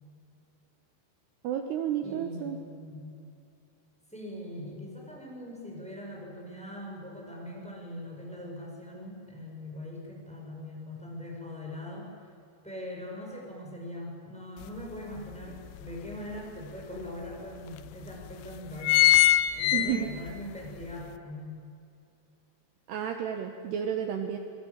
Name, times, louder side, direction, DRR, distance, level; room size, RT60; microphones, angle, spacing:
voice 1, 1.4-2.6 19.7-20.1 22.9-24.4, right 9 dB, 70° right, 5 dB, 3.1 m, -31 dB
voice 2, 2.0-3.1 4.1-12.1 12.6-19.0 19.5-21.7, left 1 dB, ahead, -2 dB, 6.5 m, -41 dB
sound 1, 14.6-14.7 15.2-16.4 17.0-17.1 17.3-17.4 18.1-18.3 18.6-20.4 20.8-20.9, left 14 dB, 80° left, 2.7 m, -22 dB
27.0 x 22.0 x 8.8 m, 2.5 s
omnidirectional pair, 5.4 m